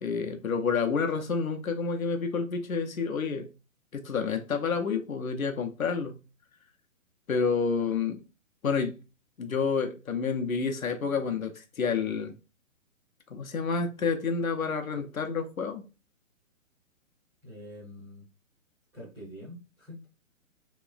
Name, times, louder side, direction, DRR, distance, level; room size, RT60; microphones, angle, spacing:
voice 1, 0.0-3.5 3.9-6.2 7.3-8.2 8.6-9.0 9.4-12.3 13.3-15.8, left 5 dB, 85° left, 0.7 m, -29 dB
voice 2, 17.4-18.2 18.9-20.0, equal, 5° right, 0.4 m, -45 dB
3.0 x 2.9 x 2.3 m
figure-of-eight pair, 130°, 41 cm